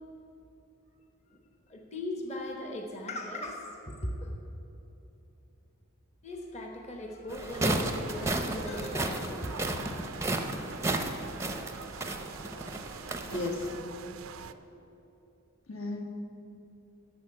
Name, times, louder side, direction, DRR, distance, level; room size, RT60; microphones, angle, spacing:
voice 1, 1.7-4.3 6.2-9.7, left 1 dB, 30° left, 1 dB, 1.1 m, -38 dB
sound 1, 7.3-13.8, right 2 dB, 15° right, 0.6 m, -33 dB
sound 2, 7.5-14.5, right 6 dB, 70° right, 0.5 m, -45 dB
voice 2, 13.2-13.7 15.7-16.0, left 2 dB, 70° left, 1 dB, 1.7 m, -34 dB
11.0 x 7.1 x 9.2 m, 3.0 s
head